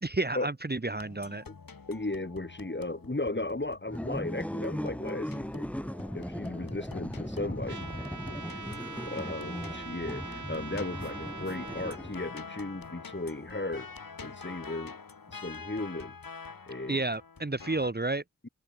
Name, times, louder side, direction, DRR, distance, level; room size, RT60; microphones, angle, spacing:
voice 1, 0.0-1.4 16.9-18.2, right 2 dB, 30° right, 1.5 m, -31 dB
sound 1, 1.0-17.9, left 5 dB, 85° left, 3.8 m, -47 dB
voice 2, 1.9-5.7 6.1-7.8 9.0-13.9 14.2-15.0 15.3-16.2 16.7-17.0, left 2 dB, 35° left, 5.8 m, -36 dB
sound 2, 3.9-12.4, equal, 5° left, 4.0 m, -38 dB
Trumpet, 7.7-12.0, right 4 dB, 60° right, 2.3 m, -42 dB
wide cardioid pair, 50°, 33 cm